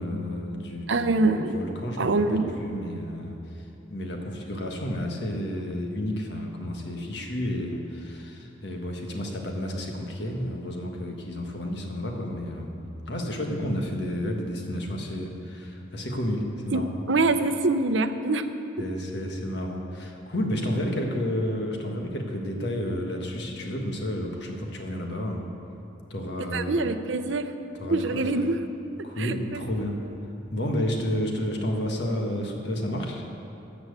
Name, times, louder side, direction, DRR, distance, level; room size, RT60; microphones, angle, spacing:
voice 1, 0.0-12.8 13.1-17.0 18.8-25.4 26.1-26.8 27.8-28.4 29.0-30.0 30.5-33.2, equal, 60° left, 2 dB, 1.5 m, -31 dB
voice 2, 0.9-1.6 2.0-2.5 16.7-18.5 26.5-27.5 27.9-28.6 29.2-29.6, right 3 dB, 70° right, 10 dB, 0.6 m, -24 dB
13.5 x 6.0 x 8.1 m, 2.9 s
head